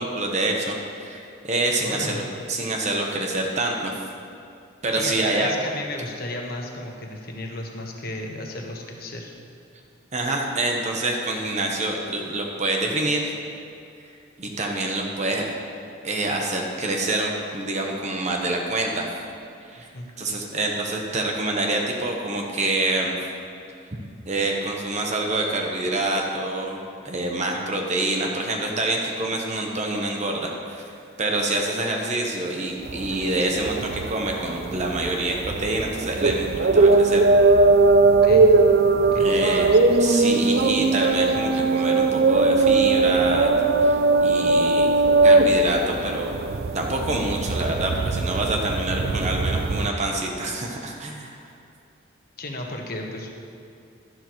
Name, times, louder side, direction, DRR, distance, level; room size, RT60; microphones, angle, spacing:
voice 1, 0.0-2.2 2.5-3.9 4.8-5.5 10.1-13.3 14.4-15.5 16.0-19.1 19.7-19.9 20.2-23.2 24.3-26.8 27.0-30.9 31.2-37.2 39.2-39.7 40.0-43.6 43.8-46.3 46.7-51.4, right 2 dB, 35° right, 1 dB, 0.9 m, -26 dB
voice 2, 1.8-2.2 4.9-9.3 19.9-20.1 38.2-38.5 39.1-39.3 52.4-53.3, left 2 dB, 50° left, 1 dB, 1.2 m, -33 dB
sound 1, 32.9-49.9, right 3 dB, 50° right, 0.4 m, -20 dB
12.0 x 11.0 x 3.1 m, 2.5 s
head